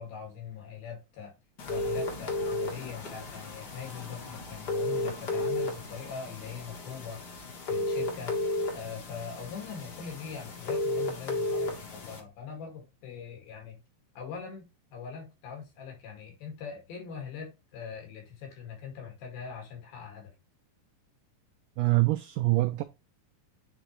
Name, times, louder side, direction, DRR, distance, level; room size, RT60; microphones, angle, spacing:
voice 1, 0.0-1.3 1.7-7.2 7.7-8.4 8.7-13.8 14.2-20.3, left 6 dB, 80° left, 4.1 m, -42 dB
sound 1, 1.6-12.2, left 2 dB, 60° left, 1.0 m, -34 dB
voice 2, 21.8-22.8, right 20 dB, 85° right, 1.8 m, -25 dB
9.0 x 3.8 x 3.1 m
omnidirectional pair, 4.2 m